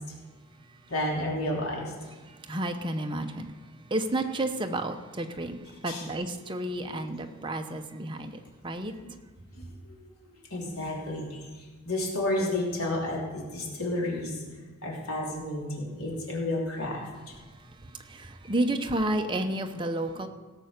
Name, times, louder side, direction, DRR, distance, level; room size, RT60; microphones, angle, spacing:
voice 1, 0.9-1.8 5.9-6.0 9.0-9.1 9.9-10.1 10.5-11.4 11.8-14.4 14.8-17.0, left 1 dB, 80° left, -2 dB, 3.3 m, -31 dB
voice 2, 2.2-8.9 17.4-20.3, right 1 dB, 20° right, 5 dB, 0.8 m, -31 dB
17.0 x 6.7 x 6.6 m, 1.4 s
head